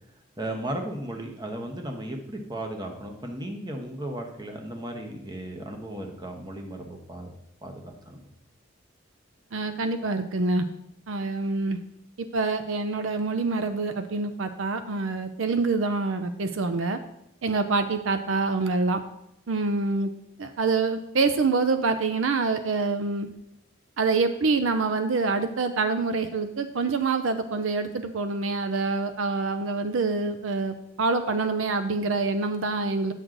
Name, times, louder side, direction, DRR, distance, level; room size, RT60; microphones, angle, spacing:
voice 1, 0.4-7.3 7.6-8.2, right 1 dB, 20° right, 2 dB, 1.1 m, -35 dB
voice 2, 9.5-10.7 11.1-11.8 12.3-17.0 17.4-19.0 19.5-20.1 20.4-23.3 24.0-33.1, right 3 dB, 75° right, 9 dB, 0.5 m, -26 dB
9.2 x 6.2 x 3.9 m, 0.78 s
head